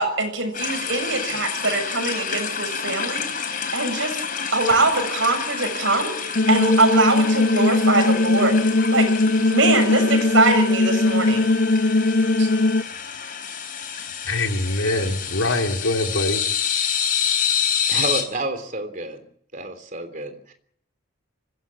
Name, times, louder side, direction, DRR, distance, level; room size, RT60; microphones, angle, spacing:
voice 1, 0.0-4.1 4.5-8.6 8.9-9.1 9.4-11.5 12.4-12.5, right 2 dB, 70° right, 6 dB, 7.3 m, -22 dB
sound 1, 0.5-18.2, left 7 dB, 45° left, 4.2 m, -28 dB
sound 2, 6.4-12.8, left 2 dB, 60° left, 0.9 m, -19 dB
voice 2, 13.9-16.4, left 2 dB, 90° left, 3 dB, 3.4 m, -24 dB
voice 3, 17.9-19.3 19.5-20.5, right 2 dB, 40° right, 8 dB, 3.4 m, -30 dB
24.5 x 17.0 x 8.8 m, 0.66 s
head